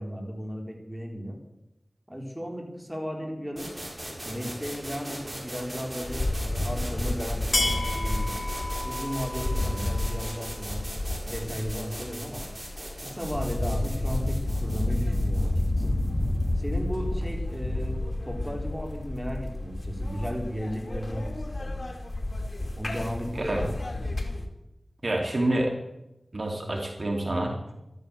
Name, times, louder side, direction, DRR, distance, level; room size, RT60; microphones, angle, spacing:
voice 1, 0.0-1.4 2.1-3.7 4.2-8.3 8.8-10.9 11.2-12.4 13.0-15.8 16.6-21.9 22.8-23.7, equal, 5° right, 1 dB, 4.3 m, -35 dB
Noise Falling, 3.6-17.3, right 1 dB, 30° right, 6.0 m, -40 dB
sound 1, 6.0-24.5, left 1 dB, 45° left, 2.5 m, -30 dB
voice 2, 25.0-25.7 26.3-27.5, right 1 dB, 60° right, 1 dB, 2.8 m, -27 dB
13.5 x 13.0 x 7.1 m, 0.93 s
wide cardioid pair, 45°, 0 cm